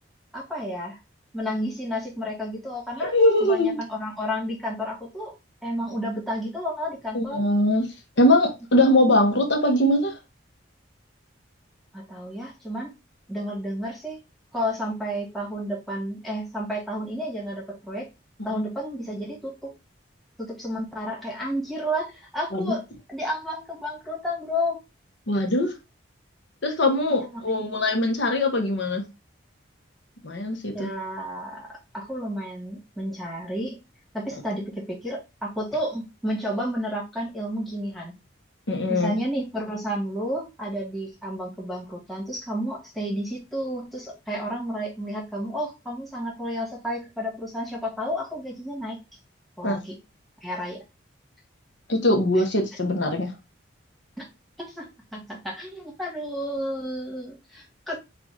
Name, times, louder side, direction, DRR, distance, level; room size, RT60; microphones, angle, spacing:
voice 1, 0.3-1.0 1.3-3.1 3.4-5.3 5.6-7.4 11.9-12.9 13.3-14.2 14.5-18.1 18.4-19.7 20.4-22.8 23.1-24.8 27.1-27.8 30.7-33.8 34.1-38.1 38.9-49.0 49.6-49.9 50.4-50.8 52.4-52.5 54.2-54.3 54.6-58.0, equal, ahead, 1.3 m, -31 dB
voice 2, 3.0-3.8 7.1-7.9 8.2-10.2 18.5-18.6 22.5-22.7 25.3-25.7 26.6-29.0 30.2-30.9 34.3-34.4 38.7-39.2 49.6-49.8 51.9-53.3, left 1 dB, 70° left, 1.0 m, -22 dB
4.8 x 2.5 x 3.7 m
head